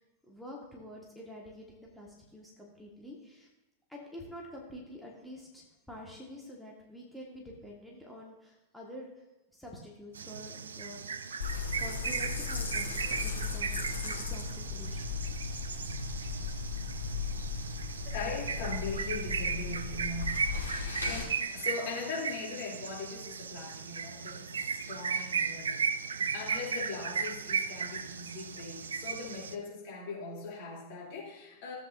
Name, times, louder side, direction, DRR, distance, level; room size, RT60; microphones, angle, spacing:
voice 1, 0.0-3.5 3.9-9.2 9.5-11.3 11.7-15.1, left 1 dB, ahead, -3 dB, 1.7 m, -48 dB
sound 1, 10.1-29.5, right 6 dB, 70° right, 0.4 m, -36 dB
sound 2, 11.4-21.2, left 4 dB, 80° left, 1.8 m, -36 dB
voice 2, 18.1-31.7, left 3 dB, 45° left, -3 dB, 3.1 m, -40 dB
15.0 x 8.1 x 2.7 m, 1.0 s
figure-of-eight pair, 90°, 0 cm